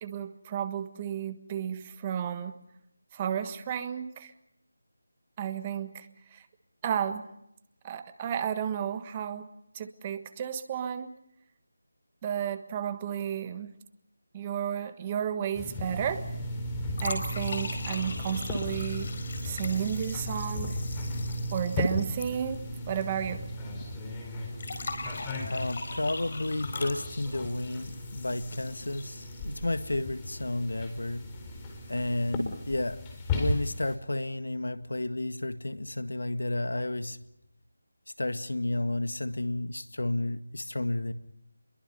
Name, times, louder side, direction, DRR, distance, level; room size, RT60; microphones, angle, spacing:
voice 1, 0.0-2.5 3.1-4.3 5.4-6.4 6.8-7.3 7.8-9.5 9.7-11.1 12.2-13.7 14.3-16.3 17.0-19.1 19.4-20.8 21.5-23.4, right 9 dB, 20° right, 10 dB, 1.4 m, -32 dB
sound 1, 15.5-33.9, left 1 dB, 15° left, 4.3 m, -36 dB
sound 2, 16.9-23.1 23.4-23.5 24.6-29.6, left 3 dB, 45° left, 4.7 m, -41 dB
voice 2, 25.5-31.3 31.9-33.0 33.3-37.2 38.2-41.1, left 2 dB, 80° left, 11 dB, 1.8 m, -31 dB
29.0 x 22.5 x 5.5 m, 0.78 s
figure-of-eight pair, 165°, 0 cm